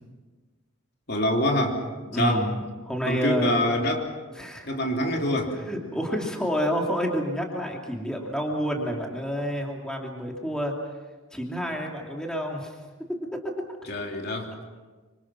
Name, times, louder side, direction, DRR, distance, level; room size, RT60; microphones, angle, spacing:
voice 1, 1.1-1.8 2.1-2.5 3.1-4.1 4.7-5.6 13.8-14.6, left 1 dB, 50° left, 2 dB, 2.9 m, -25 dB
voice 2, 2.1-2.6 2.8-3.6 4.3-4.7 5.5-10.7 11.3-12.8 13.3-13.5, equal, 5° left, 0 dB, 2.7 m, -29 dB
26.0 x 25.5 x 6.1 m, 1.3 s
head